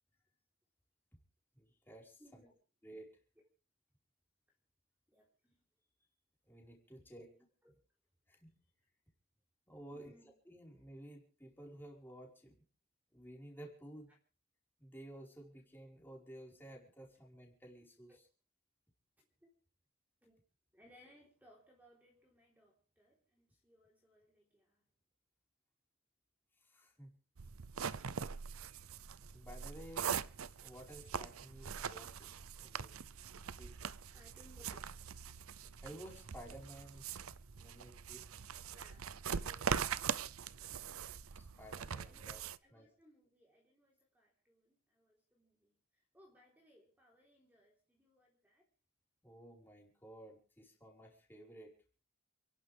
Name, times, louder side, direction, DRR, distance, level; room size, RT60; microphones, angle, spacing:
voice 1, 1.5-2.2 2.8-3.1 6.5-7.3 8.3-8.5 9.7-12.5 13.1-14.1 14.8-18.1 26.6-27.1 29.0-30.2 30.6-33.0 33.6-33.8 35.8-37.2 37.6-38.3 41.4-42.4 42.7-42.9 49.2-51.7, right 1 dB, 10° left, 0 dB, 4.9 m, -54 dB
voice 2, 2.2-2.5 5.1-5.3 7.2-7.3 7.6-7.7 9.9-10.3 14.1-14.2 18.1-18.2 19.2-19.5 20.2-20.4 20.7-24.9 34.1-34.9 38.7-40.7 42.0-48.7, equal, 10° right, -2 dB, 3.8 m, -66 dB
sound 1, 27.4-42.6, right 7 dB, 85° right, 0.7 m, -42 dB
29.5 x 11.5 x 3.5 m, 0.37 s
head